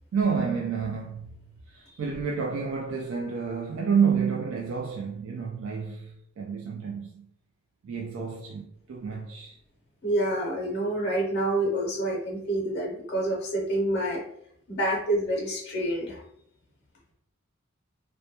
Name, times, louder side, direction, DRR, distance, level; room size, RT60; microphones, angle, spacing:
voice 1, 0.1-1.4 1.7-7.3 7.8-9.6, right 6 dB, 65° right, 0.3 m, -29 dB
voice 2, 10.0-14.2 14.7-16.2, right 1 dB, 50° left, 0.6 m, -27 dB
2.1 x 2.1 x 2.8 m
head